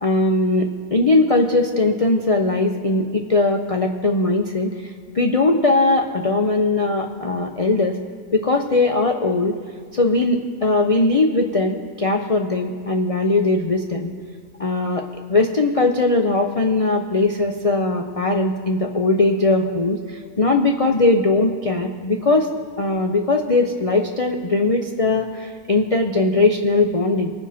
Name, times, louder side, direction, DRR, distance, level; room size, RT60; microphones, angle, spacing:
voice 1, 0.0-8.0 8.3-9.6 9.9-14.1 14.6-15.0 15.3-22.5 22.8-27.3, left 2 dB, 60° left, 3 dB, 0.3 m, -20 dB
21.5 x 7.4 x 4.2 m, 2.1 s
omnidirectional pair, 1.5 m